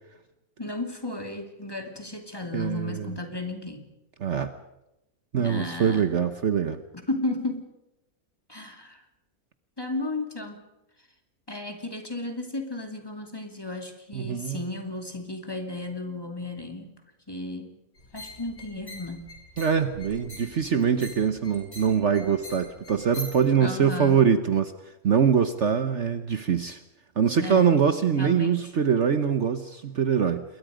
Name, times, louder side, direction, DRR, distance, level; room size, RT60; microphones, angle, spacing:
voice 1, 0.6-3.9 5.3-6.1 6.9-7.7 8.5-9.0 9.8-10.7 11.5-17.0 17.3-17.8 18.1-19.4 23.6-24.2 27.4-27.9 28.2-28.7, left 2 dB, 15° left, 4 dB, 2.7 m, -34 dB
voice 2, 2.5-3.1 4.2-4.5 5.3-6.8 14.1-14.6 19.6-24.7 25.0-26.8 27.2-30.4, right 7 dB, 55° right, 10 dB, 1.2 m, -23 dB
sound 1, 18.0-23.5, left 1 dB, 45° left, 7.3 m, -44 dB
27.5 x 22.0 x 5.1 m, 0.91 s
omnidirectional pair, 1.5 m